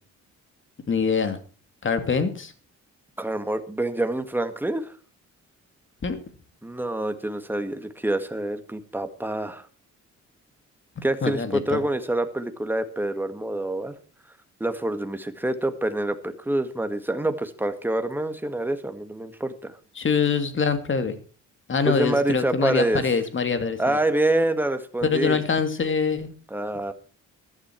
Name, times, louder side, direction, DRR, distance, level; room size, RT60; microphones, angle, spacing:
voice 1, 0.9-1.4 1.8-2.5 6.0-6.2 11.2-11.8 20.0-21.2 21.7-24.0 25.0-26.3, left 5 dB, 40° left, 9 dB, 2.5 m, -24 dB
voice 2, 3.2-4.9 6.6-9.7 11.0-13.9 14.6-19.7 21.8-23.0 23.8-25.4 26.5-26.9, right 1 dB, 5° right, 8 dB, 1.8 m, -26 dB
14.5 x 12.5 x 4.6 m, 0.37 s
cardioid pair, 90°, 30 cm